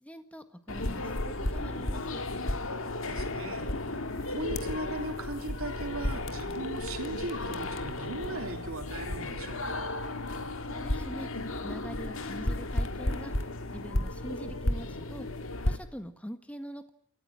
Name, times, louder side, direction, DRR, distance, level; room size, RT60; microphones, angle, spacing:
voice 1, 0.0-1.0 1.4-2.2 10.7-13.3 13.7-15.3 15.7-16.9, equal, 5° left, 9 dB, 1.6 m, -43 dB
sound 1, 0.7-15.8, left 1 dB, 60° left, 1.9 m, -33 dB
voice 2, 3.0-3.7 4.3-9.7, right 2 dB, 70° right, 6 dB, 3.3 m, -38 dB
29.0 x 14.0 x 10.0 m, 0.64 s
head